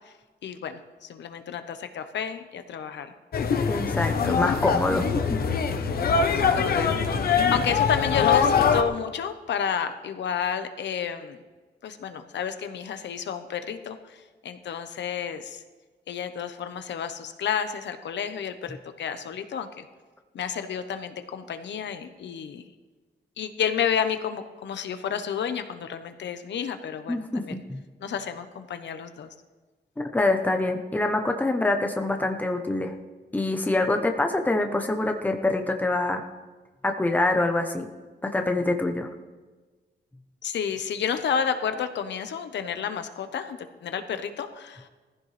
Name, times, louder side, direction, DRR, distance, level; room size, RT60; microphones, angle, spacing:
voice 1, 0.4-3.1 6.5-11.4 11.8-14.2 14.4-15.6 16.1-19.9 20.3-22.6 23.4-27.6 28.0-29.3 40.4-44.9, left 7 dB, 90° left, 9 dB, 1.0 m, -31 dB
sound 1, 3.3-8.8, left 6 dB, 60° left, 1.0 m, -23 dB
voice 2, 3.7-5.0 27.1-27.8 30.1-32.9 33.3-36.2 36.8-37.9 38.2-39.1, left 2 dB, 10° left, 5 dB, 0.8 m, -25 dB
20.5 x 15.0 x 3.3 m, 1.3 s
wide cardioid pair, 175°, 18 cm